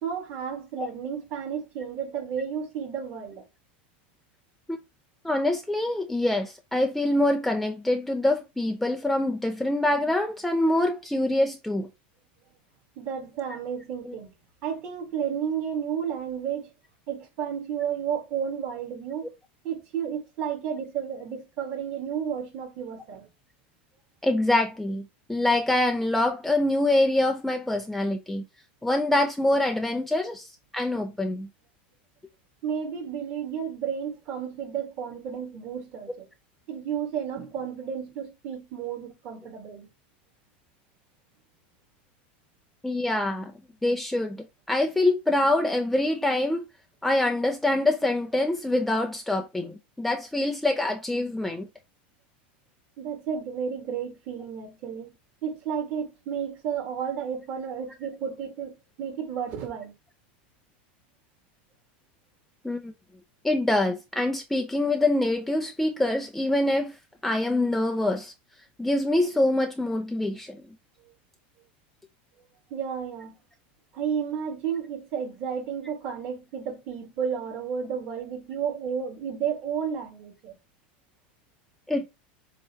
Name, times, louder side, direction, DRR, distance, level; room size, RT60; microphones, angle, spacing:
voice 1, 0.0-3.4 13.0-14.3 14.6-16.7 17.1-19.3 19.6-23.3 32.6-36.3 36.7-39.9 53.0-55.1 55.4-58.7 59.0-59.9 72.7-73.3 73.9-80.6, right 7 dB, 40° right, 2.1 m, -32 dB
voice 2, 5.2-11.9 14.0-14.1 24.2-28.4 28.8-31.5 42.8-43.5 43.8-46.6 47.0-51.7 62.6-62.9 63.4-67.0 67.2-68.3 68.8-70.6 81.9-82.1, left 1 dB, 5° left, 0.4 m, -25 dB
7.4 x 2.9 x 4.3 m
supercardioid pair, 170°, 6 cm